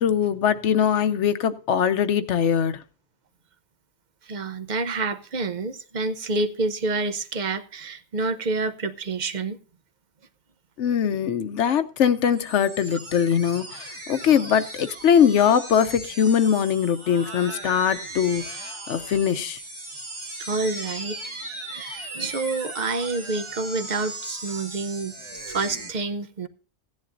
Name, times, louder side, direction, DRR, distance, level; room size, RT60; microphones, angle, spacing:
voice 1, 0.0-2.8 10.8-19.6, left 8 dB, 80° left, 1.0 m, -22 dB
voice 2, 4.2-9.6 20.4-21.2 21.7-25.1 25.4-26.5, right 3 dB, 45° right, 0.8 m, -28 dB
sound 1, 12.3-25.9, right 2 dB, 25° right, 1.3 m, -38 dB
16.5 x 10.5 x 2.5 m
omnidirectional pair, 1.2 m